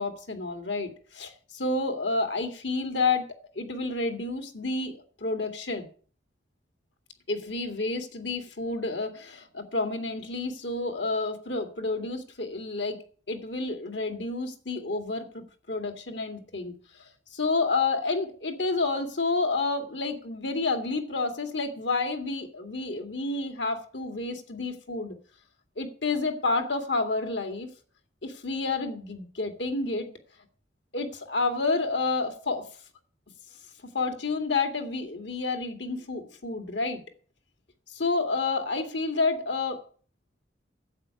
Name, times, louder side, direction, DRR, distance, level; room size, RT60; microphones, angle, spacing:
voice 1, 0.0-5.9 7.3-13.0 13.3-16.7 17.3-25.1 25.8-27.7 28.2-30.1 30.9-32.6 33.9-37.0 37.9-39.8, left 3 dB, 85° left, 2.3 m, -29 dB
11.5 x 8.1 x 7.7 m
head